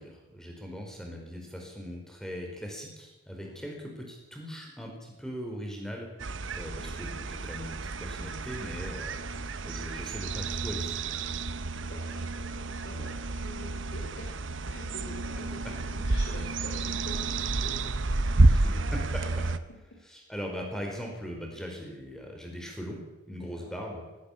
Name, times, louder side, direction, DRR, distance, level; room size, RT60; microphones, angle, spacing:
voice 1, 0.0-7.7 8.0-9.2 9.6-11.0 15.6-15.7 18.5-19.5 20.1-23.0 23.3-24.0, equal, 5° left, 1 dB, 4.8 m, -40 dB
sound 1, 6.2-19.6, right 2 dB, 70° right, 1.0 m, -30 dB
voice 2, 11.9-17.8 18.4-18.8 23.6-23.7, left 1 dB, 55° left, -2 dB, 3.8 m, -47 dB
18.5 x 17.0 x 8.6 m, 1.1 s
head